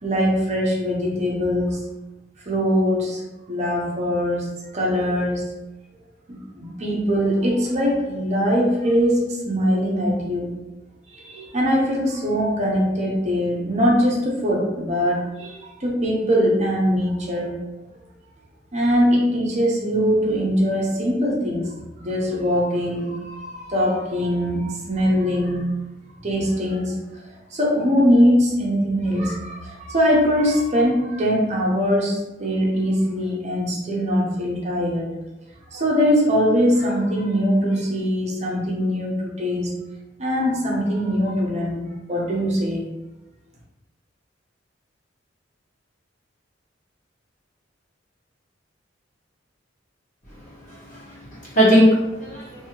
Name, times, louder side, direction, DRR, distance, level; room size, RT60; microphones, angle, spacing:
voice 1, 0.0-1.8 2.5-3.2 3.5-4.5 4.7-5.4 6.3-10.5 11.1-17.5 18.7-21.7 22.0-25.7 26.2-27.2 27.5-35.1 35.7-39.7 40.2-42.8, equal, 40° right, -3 dB, 0.7 m, -22 dB
voice 2, 50.4-52.7, equal, 40° left, -8 dB, 1.2 m, -20 dB
2.7 x 2.6 x 2.9 m, 1.0 s
head